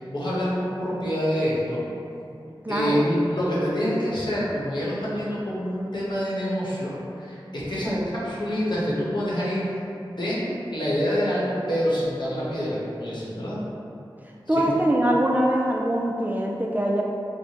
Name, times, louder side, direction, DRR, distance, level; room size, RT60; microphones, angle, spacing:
voice 1, 0.0-1.8 2.7-7.9 8.2-9.6 10.2-13.6 14.5-14.7, equal, 55° left, -8 dB, 1.0 m, -26 dB
voice 2, 2.6-3.0 7.9-8.1 14.5-17.0, right 1 dB, 20° right, -2 dB, 0.3 m, -23 dB
4.7 x 2.1 x 2.8 m, 2.7 s
wide cardioid pair, 50°, 9 cm